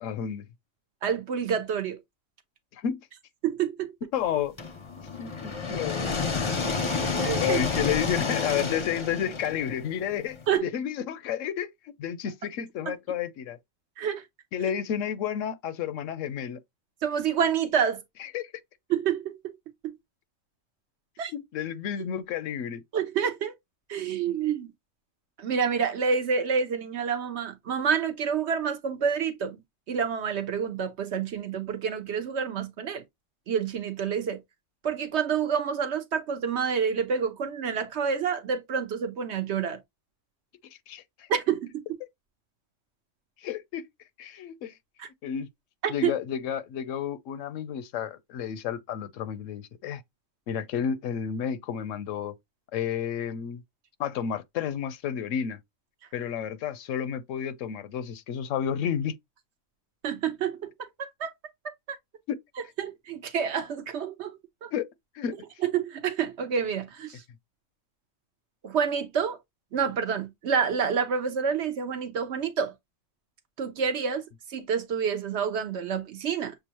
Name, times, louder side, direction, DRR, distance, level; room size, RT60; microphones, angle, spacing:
voice 1, 0.0-0.4 2.7-3.0 4.1-4.5 5.1-6.4 7.4-13.6 14.5-16.6 18.2-18.5 21.3-22.8 40.9-41.3 43.4-43.9 44.2-44.7 45.2-45.5 45.9-50.0 50.5-52.3 52.7-53.6 54.0-55.6 56.1-59.2 62.3-62.4 64.7-64.9 65.1-65.4, left 8 dB, 75° left, 0.9 m, -31 dB
voice 2, 1.0-2.0 3.4-3.9 7.2-7.6 10.5-10.6 12.9-13.0 14.0-14.2 17.0-18.0 18.9-19.6 19.8-19.9 21.2-21.3 22.9-23.5 23.9-24.7 25.4-29.6 29.9-33.0 33.5-34.4 34.8-39.8 41.3-41.8 45.0-45.1 45.8-46.1 60.0-60.7 61.0-61.3 62.8-64.7 65.6-67.2 68.6-69.4 69.7-72.7 73.6-74.2 74.5-76.5, right 7 dB, 60° right, 0.9 m, -28 dB
sound 1, 4.6-10.5, left 4 dB, 30° left, 0.5 m, -30 dB
6.8 x 2.3 x 2.9 m
omnidirectional pair, 1.4 m